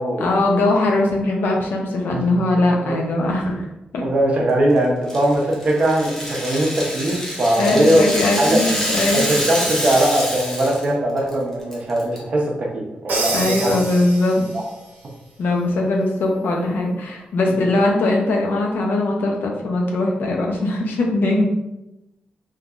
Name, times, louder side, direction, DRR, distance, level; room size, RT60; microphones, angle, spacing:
voice 1, 0.2-3.7 3.9-4.0 7.6-9.3 13.3-14.4 15.4-21.4, left 2 dB, 85° left, 0 dB, 0.7 m, -20 dB
voice 2, 4.0-8.0 8.4-8.6 9.1-13.7 14.5-14.6 17.5-17.6, right 1 dB, 40° right, -2 dB, 0.7 m, -20 dB
Rattle (instrument), 5.1-10.9 11.2-11.3 11.7-12.2, equal, 10° left, 0.7 m, -26 dB
Crash cymbal, 13.1-14.8, right 2 dB, 85° right, 0.8 m, -27 dB
3.6 x 2.7 x 2.4 m, 0.92 s
wide cardioid pair, 155°, 3 cm